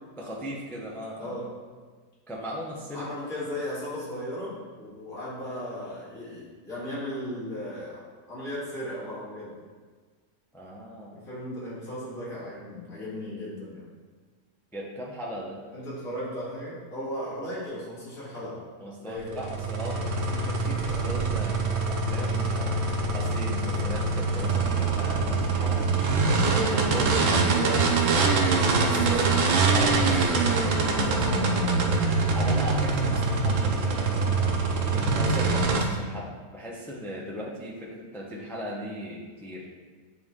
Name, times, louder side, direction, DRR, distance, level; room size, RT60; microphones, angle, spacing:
voice 1, 0.2-1.4 2.3-3.1 10.5-11.2 14.7-15.6 18.8-25.9 26.4-29.2 29.7-31.6 32.3-34.5 34.9-39.7, equal, 5° left, -3 dB, 0.3 m, -38 dB
voice 2, 1.2-1.5 2.9-8.0 8.3-9.5 11.1-13.9 15.7-18.6 19.1-19.4 28.7-29.7 33.1-33.3, equal, 65° left, -9 dB, 2.5 m, -36 dB
sound 1, 19.2-35.8, right 3 dB, 65° right, 1.0 m, -24 dB
8.6 x 3.1 x 3.6 m, 1.5 s
omnidirectional pair, 1.6 m